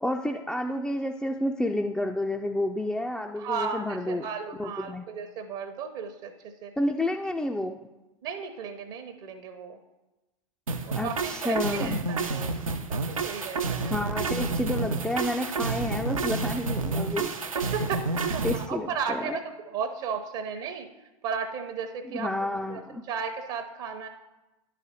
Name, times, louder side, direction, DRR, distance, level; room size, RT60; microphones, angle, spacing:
voice 1, 0.0-4.2 4.6-5.0 6.8-7.8 11.0-12.0 13.9-17.3 18.4-19.4 22.1-23.0, left 1 dB, 5° left, 1 dB, 0.3 m, -30 dB
voice 2, 3.4-6.3 6.6-6.7 8.2-9.8 10.9-12.6 12.9-13.9 17.5-20.9 21.2-22.3 22.7-24.1, right 6 dB, 50° right, 7 dB, 0.7 m, -34 dB
sound 1, 10.7-18.7, right 3 dB, 85° right, 0.6 m, -29 dB
11.0 x 4.1 x 4.1 m, 1.0 s
figure-of-eight pair, 90°, 17 cm